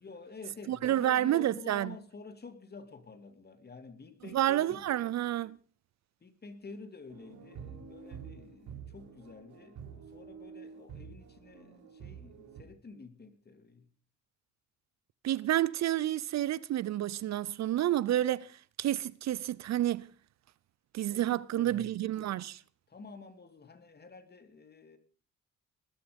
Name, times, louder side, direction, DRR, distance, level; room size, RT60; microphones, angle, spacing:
voice 1, 0.0-5.1 6.2-13.9 21.1-22.1 22.9-25.0, left 4 dB, 35° left, 2.6 m, -49 dB
voice 2, 0.7-2.0 4.3-5.6 15.2-20.1 20.9-22.6, right 13 dB, 60° right, 0.6 m, -30 dB
sound 1, 7.1-12.6, right 7 dB, 80° right, 4.3 m, -48 dB
19.5 x 12.0 x 5.2 m
cardioid pair, 90°, 30 cm